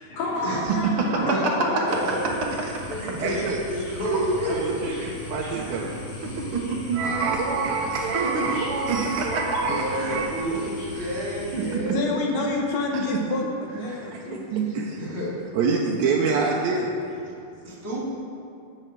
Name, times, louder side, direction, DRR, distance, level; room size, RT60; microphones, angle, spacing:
voice 1, 0.1-2.0 15.1-15.2 17.4-17.7, left 2 dB, 85° left, -7 dB, 4.3 m, -31 dB
voice 2, 0.7-1.2 1.7-2.1 2.6-2.7 3.2-3.4 4.0-4.4 5.5-7.0 8.1-8.6 8.9-9.6 9.9-10.2 10.5-10.6 10.9-11.1 11.5-11.9 13.8-14.0 14.3-14.8, right 5 dB, 55° right, 0 dB, 1.7 m, -28 dB
voice 3, 1.2-2.2 2.9-4.7 5.0-5.1 7.5-7.6 9.7-12.2 15.0-15.4 16.2-16.3 17.6-18.0, equal, 25° right, -6 dB, 3.1 m, -31 dB
sound 1, 1.9-11.8, left 2 dB, 50° left, 3.3 m, -39 dB
voice 4, 3.2-3.6 4.5-5.9 6.9-10.3 14.1-14.2 14.7-15.0 15.5-16.9, right 4 dB, 75° right, -2 dB, 2.1 m, -26 dB
voice 5, 11.9-14.5, left 3 dB, 65° left, 1 dB, 2.0 m, -28 dB
12.5 x 8.8 x 4.7 m, 2.6 s
omnidirectional pair, 3.4 m